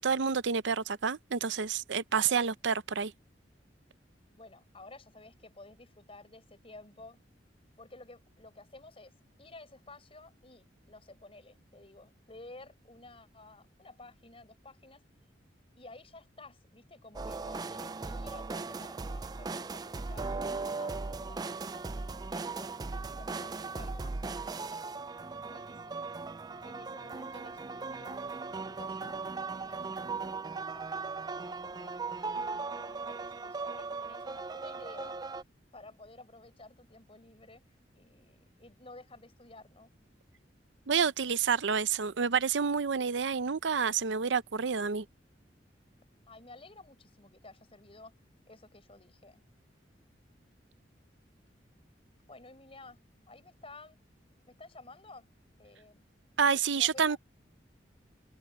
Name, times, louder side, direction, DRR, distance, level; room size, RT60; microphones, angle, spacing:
voice 1, 0.0-3.1 40.9-45.0 56.4-57.2, right 6 dB, 80° right, 0.6 m, -29 dB
voice 2, 4.3-7.2 7.8-15.0 15.8-22.7 23.1-24.9 25.3-26.1 26.6-31.1 31.4-35.2 35.7-37.6 37.9-39.9 46.3-48.1 48.5-49.4 52.3-53.0 53.3-54.0 54.5-55.3 55.6-56.1 56.7-57.2, left 2 dB, 30° left, 6.0 m, -53 dB
sound 1, 17.1-35.4, right 4 dB, 20° right, 0.4 m, -38 dB
head